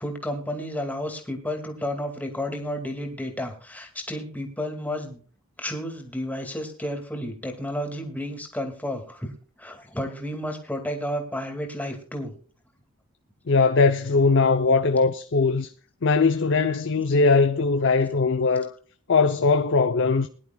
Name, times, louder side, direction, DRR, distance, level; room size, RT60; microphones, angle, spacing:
voice 1, 0.0-5.2 5.6-12.3, left 1 dB, 5° left, 2.3 m, -32 dB
voice 2, 13.5-15.7 16.0-18.7 19.1-20.3, left 4 dB, 55° left, 0.7 m, -20 dB
21.5 x 11.0 x 2.4 m
head